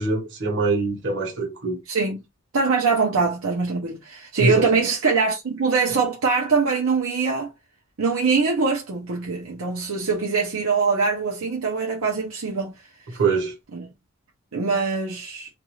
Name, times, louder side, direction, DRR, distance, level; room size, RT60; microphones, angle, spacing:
voice 1, 0.0-1.8 4.4-4.6 13.1-13.6, right 3 dB, 55° right, 1.1 m, -23 dB
voice 2, 1.9-2.2 2.5-7.5 8.0-12.7 13.7-13.9 14.5-15.5, right 4 dB, 75° right, 0.7 m, -23 dB
2.6 x 2.4 x 3.1 m
head